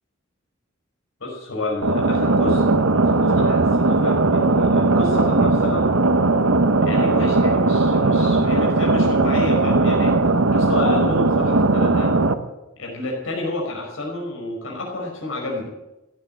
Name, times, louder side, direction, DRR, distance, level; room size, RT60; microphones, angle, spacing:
voice 1, 1.2-2.6 3.1-5.9 6.8-10.2 10.5-12.2 12.8-15.7, left 2 dB, 70° left, -2 dB, 5.4 m, -29 dB
sound 1, 1.8-12.3, right 2 dB, 80° right, 1.1 m, -18 dB
16.5 x 9.3 x 9.1 m, 0.98 s
head